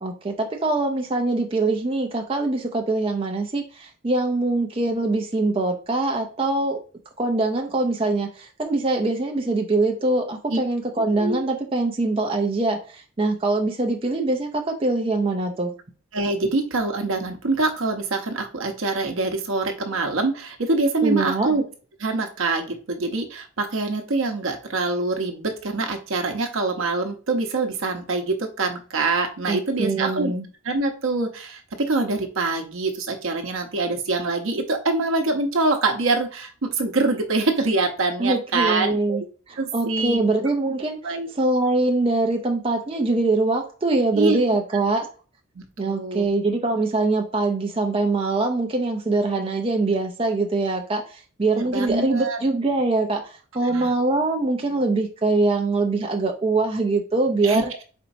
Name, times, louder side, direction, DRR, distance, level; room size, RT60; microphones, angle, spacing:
voice 1, 0.0-6.8 7.2-15.7 21.0-21.5 29.5-30.4 38.2-39.2 39.5-45.1 45.8-57.7, right 2 dB, 25° right, 3 dB, 0.4 m, -23 dB
voice 2, 16.1-21.6 22.0-30.3 30.6-39.3 39.6-40.2 41.0-41.3 44.1-44.4 45.5-46.3 51.6-52.4 53.6-53.9 57.4-57.6, right 3 dB, 70° right, 4 dB, 0.8 m, -25 dB
4.4 x 4.0 x 2.6 m, 0.37 s
head